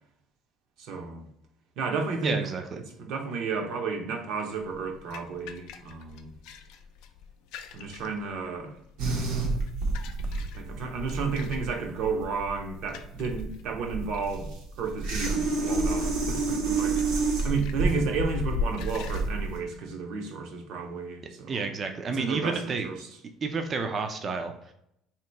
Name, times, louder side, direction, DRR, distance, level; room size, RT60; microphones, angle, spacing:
voice 1, 0.8-1.3 1.8-2.4 3.0-6.3 7.7-8.7 9.0-9.4 10.5-14.5 14.8-17.0 17.4-21.6 22.1-23.0, right 4 dB, 65° right, 0.8 m, -32 dB
voice 2, 2.2-2.8 21.5-22.9 23.4-24.7, right 4 dB, 30° right, 0.4 m, -30 dB
sound 1, 4.6-19.3, left 6 dB, 75° left, 0.4 m, -41 dB
sound 2, 9.0-19.6, right 3 dB, 80° right, 1.1 m, -29 dB
3.0 x 2.9 x 4.4 m
cardioid pair, 150°, 0 cm